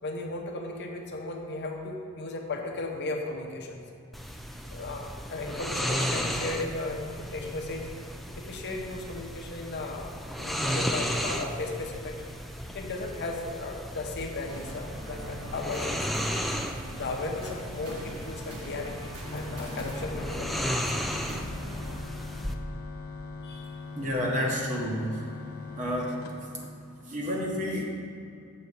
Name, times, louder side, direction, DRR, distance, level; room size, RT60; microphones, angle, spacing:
voice 1, 0.0-3.8 4.6-7.9 8.4-10.1 10.4-12.2 12.7-16.1 17.0-20.8 23.4-23.8 24.4-24.5, left 2 dB, 50° left, 1 dB, 0.8 m, -36 dB
sound 1, 4.1-22.6, equal, ahead, 0.3 m, -35 dB
sound 2, 14.5-21.9, equal, 80° right, 1.6 m, -41 dB
sound 3, 19.2-27.3, left 3 dB, 85° left, 0.9 m, -41 dB
voice 2, 23.9-25.2 25.8-26.2 27.1-27.8, equal, 35° right, -2 dB, 1.4 m, -30 dB
7.9 x 4.1 x 6.6 m, 2.5 s
head